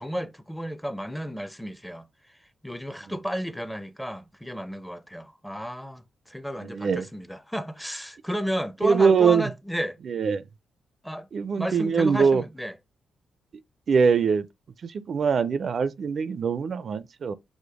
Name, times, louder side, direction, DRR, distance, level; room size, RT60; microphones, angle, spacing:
voice 1, 0.0-2.1 2.6-10.0 11.0-11.3 11.6-12.7, equal, 5° left, 0.5 m, -33 dB
voice 2, 6.6-7.1 8.8-9.5 10.1-10.4 11.3-12.4 13.9-14.4 14.8-17.4, right 5 dB, 55° right, 0.4 m, -22 dB
5.0 x 2.0 x 4.7 m
cardioid pair, 65°, 0 cm